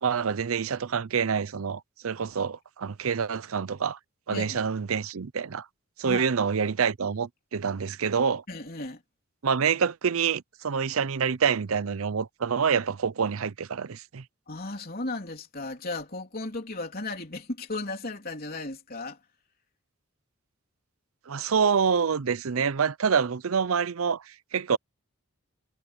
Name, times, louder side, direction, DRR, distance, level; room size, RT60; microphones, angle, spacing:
voice 1, 0.0-4.0 4.3-5.7 6.0-8.4 9.4-14.2 21.3-24.8, right 6 dB, 75° right, 0.6 m, -27 dB
voice 2, 4.3-4.6 6.0-6.3 8.5-9.0 14.5-19.2, left 2 dB, 45° left, 3.7 m, -35 dB
head